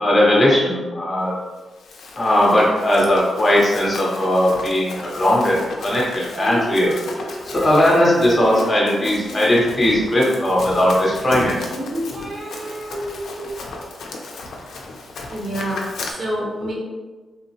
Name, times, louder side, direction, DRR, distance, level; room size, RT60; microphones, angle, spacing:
voice 1, 0.0-1.4 2.2-6.9 7.4-11.6, left 1 dB, 20° left, -4 dB, 0.6 m, -18 dB
Run, 1.6-16.1, left 3 dB, 70° left, 0.4 m, -36 dB
sound 1, 6.3-10.6 11.6-13.5, equal, 30° right, 0.7 m, -32 dB
voice 2, 15.3-16.7, equal, 50° right, -7 dB, 1.0 m, -27 dB
3.0 x 2.0 x 2.6 m, 1.3 s
wide cardioid pair, 170°, 0 cm